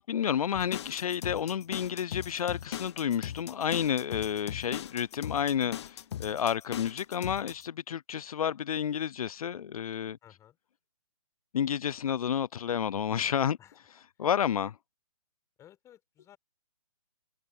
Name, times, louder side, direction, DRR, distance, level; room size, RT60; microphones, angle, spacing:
voice 1, 0.0-10.2 11.5-13.6 14.2-14.8, left 8 dB, 65° left, 0.5 m, -30 dB
sound 1, 0.5-7.6, left 10 dB, 45° left, 1.1 m, -39 dB
voice 2, 10.2-10.6 13.6-13.8 14.2-14.3 15.6-16.4, left 11 dB, 15° left, 4.6 m, -56 dB
hypercardioid pair, 150°, 19 cm